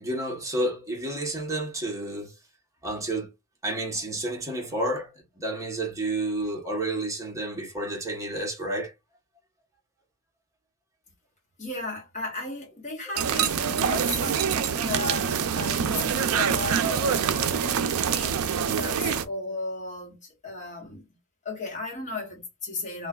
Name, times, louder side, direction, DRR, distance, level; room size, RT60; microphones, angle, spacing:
voice 1, 0.0-2.3 2.8-3.3 3.6-8.9, right 1 dB, 15° right, 0.9 m, -30 dB
voice 2, 11.6-21.1 21.4-23.1, left 3 dB, 35° left, 1.3 m, -36 dB
sound 1, 13.2-19.2, right 7 dB, 70° right, 0.4 m, -25 dB
3.1 x 2.2 x 2.3 m
head